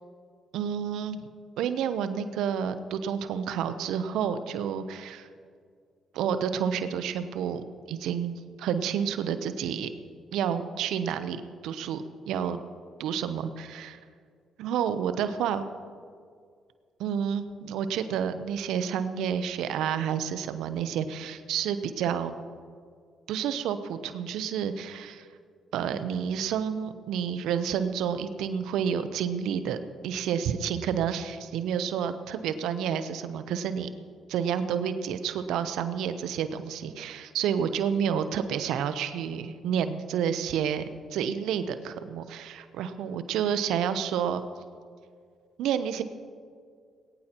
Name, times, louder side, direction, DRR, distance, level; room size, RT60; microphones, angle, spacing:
voice 1, 0.5-1.2 1.6-5.3 6.1-9.9 10.3-12.6 13.0-14.0 14.6-15.6 17.0-22.3 23.3-25.3 25.7-29.8 30.0-33.9 34.3-44.4 45.6-46.0, right 8 dB, 75° right, 11 dB, 0.8 m, -30 dB
19.5 x 18.0 x 3.0 m, 2.1 s
hypercardioid pair, 45°, 0 cm